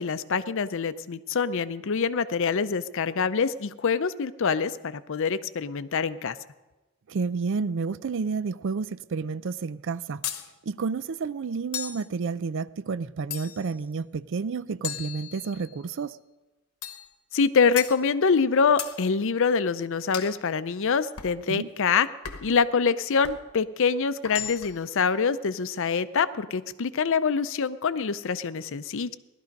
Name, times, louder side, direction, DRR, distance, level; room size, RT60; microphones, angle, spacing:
voice 1, 0.0-6.4 17.3-22.1 22.4-29.1, left 5 dB, 60° left, 0.6 m, -25 dB
voice 2, 7.1-10.2 10.7-16.2 21.5-21.7, right 5 dB, 60° right, 0.4 m, -30 dB
sound 1, 10.2-10.5 11.7-12.1 13.3-13.8 14.8-15.7 16.8-17.1 17.8-18.0 18.8-19.0 20.1-20.4 21.2-21.4 22.2-22.6 23.2-23.5 24.2-24.8, left 10 dB, 80° left, 1.0 m, -36 dB
17.5 x 12.0 x 5.3 m
head